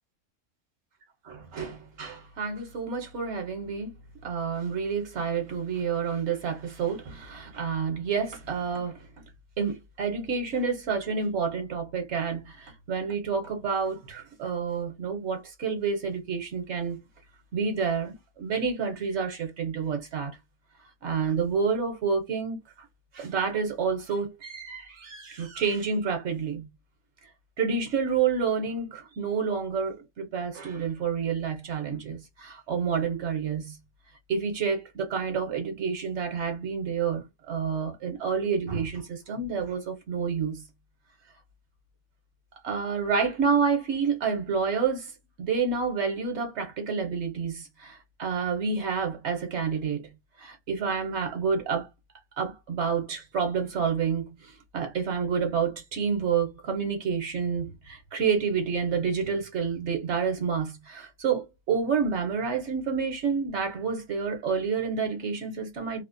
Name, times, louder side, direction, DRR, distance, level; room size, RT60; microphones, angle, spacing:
voice 1, 1.3-3.9 4.2-9.0 9.6-17.0 17.5-20.4 21.0-22.6 23.1-26.7 27.6-33.8 34.3-40.6 42.6-45.1 45.4-50.0 50.4-51.9 52.4-54.3 54.7-66.0, right 6 dB, 65° right, 0.9 m, -29 dB
2.5 x 2.0 x 2.4 m
omnidirectional pair, 1.3 m